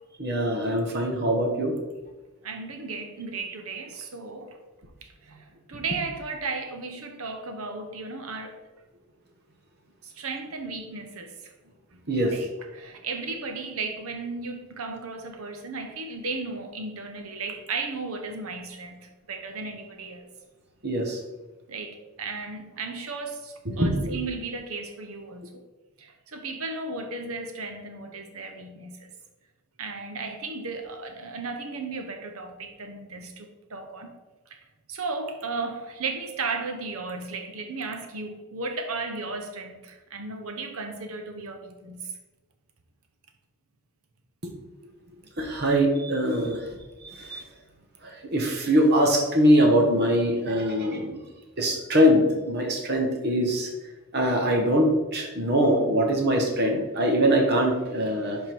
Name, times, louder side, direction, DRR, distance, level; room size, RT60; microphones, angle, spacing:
voice 1, 0.2-1.7 12.1-12.3 20.8-21.2 23.7-24.2 45.4-46.6 47.0-47.4 48.0-51.2 51.6-53.7 54.1-58.4, equal, 50° right, 2 dB, 1.2 m, -23 dB
voice 2, 2.4-4.6 5.0-8.6 10.0-11.5 11.9-12.0 12.3-20.2 21.7-25.5 26.0-29.1 29.8-34.2 34.5-34.6 34.9-42.1, right 3 dB, 75° right, 5 dB, 0.9 m, -35 dB
11.0 x 3.8 x 4.5 m, 1.2 s
head